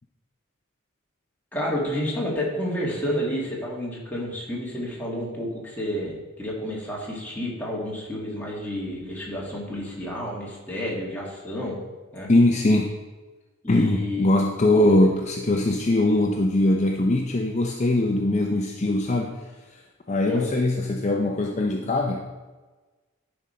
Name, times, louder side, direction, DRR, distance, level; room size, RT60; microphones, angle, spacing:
voice 1, 1.5-11.8 12.1-12.3 13.6-14.9 20.2-20.5, left 1 dB, 10° left, -5 dB, 2.0 m, -30 dB
voice 2, 12.3-12.9 13.7-19.5 19.7-19.8 20.1-22.3, left 2 dB, 35° left, 1 dB, 0.6 m, -21 dB
11.0 x 5.3 x 4.3 m, 1.3 s
head